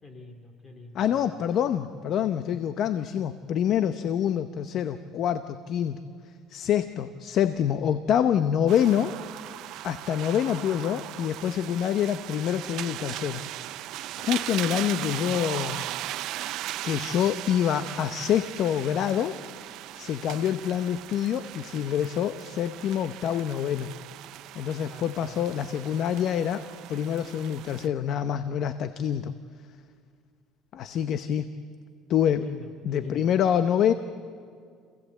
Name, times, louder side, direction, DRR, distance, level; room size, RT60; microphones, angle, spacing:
voice 1, 0.0-1.4 24.9-25.4 32.3-33.3, left 2 dB, 25° left, 5 dB, 2.4 m, -44 dB
voice 2, 0.9-6.0 6.5-9.2 9.8-13.4 14.2-15.9 16.8-19.4 20.0-23.9 24.5-29.3 30.7-31.5 32.1-32.4 32.8-33.9, left 9 dB, 55° left, 11 dB, 0.7 m, -26 dB
sound 1, 8.7-27.9, right 14 dB, 70° right, 0.6 m, -38 dB
26.5 x 16.5 x 8.2 m, 2.2 s
cardioid pair, 120°, 0 cm